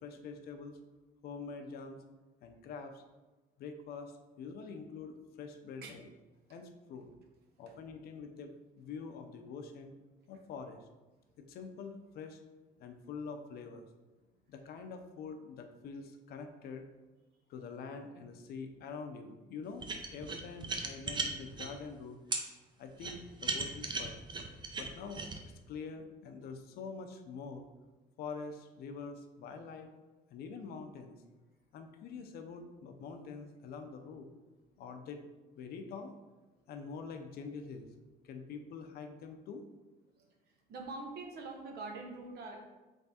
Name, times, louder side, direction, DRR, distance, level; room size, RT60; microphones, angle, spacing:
voice 1, 0.0-0.8 1.2-2.0 2.4-3.0 3.6-6.0 6.5-7.1 7.6-9.9 10.3-10.9 11.4-12.4 12.8-13.8 14.5-16.8 17.5-19.8 20.1-22.2 22.8-24.2 24.8-27.6 28.2-29.9 30.3-31.2 31.7-34.3 34.8-35.2 35.6-36.1 36.7-37.9 38.2-39.6, left 5 dB, 70° left, 6 dB, 0.6 m, -45 dB
sound 1, 19.8-21.7 22.3-22.4 23.0-25.4, right 4 dB, 25° right, 0.6 m, -36 dB
voice 2, 40.7-42.7, right 3 dB, 70° right, 3 dB, 0.8 m, -44 dB
3.5 x 3.2 x 4.1 m, 1.2 s
cardioid pair, 110°, 17 cm